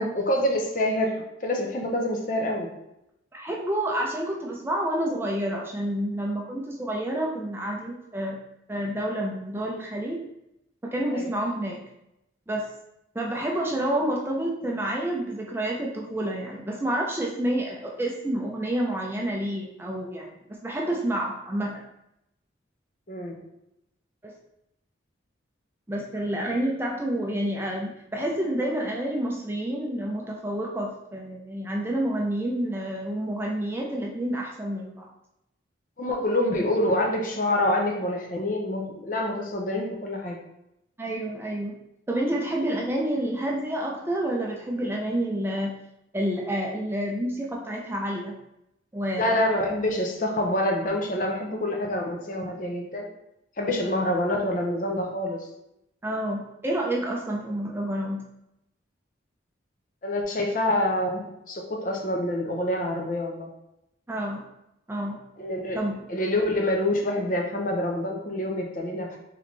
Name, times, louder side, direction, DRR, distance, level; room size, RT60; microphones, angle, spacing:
voice 1, 0.0-2.7 11.1-11.3 23.1-23.4 36.0-40.4 49.2-53.1 53.6-55.4 60.0-63.5 65.4-65.8 66.1-69.2, left 1 dB, 45° left, 1 dB, 0.6 m, -26 dB
voice 2, 3.3-8.4 8.7-10.2 10.8-11.8 12.5-12.7 13.1-21.8 24.2-24.3 25.9-35.1 41.0-41.7 42.1-45.7 46.1-48.4 48.9-49.4 56.0-58.2 64.1-64.4 64.9-65.2 65.7-65.9, right 1 dB, 10° right, -1 dB, 0.4 m, -29 dB
3.7 x 3.4 x 3.2 m, 0.84 s
head